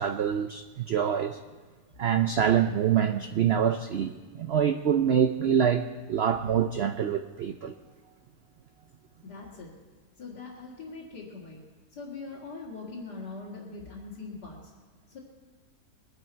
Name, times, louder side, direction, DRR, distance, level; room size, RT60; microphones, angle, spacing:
voice 1, 0.0-1.4 2.0-7.7, right 8 dB, 90° right, 8 dB, 0.5 m, -25 dB
voice 2, 9.2-9.7 10.2-11.6 11.9-14.7 15.1-15.2, left 3 dB, 80° left, -7 dB, 2.6 m, -42 dB
21.5 x 10.5 x 4.5 m, 1.3 s
omnidirectional pair, 1.7 m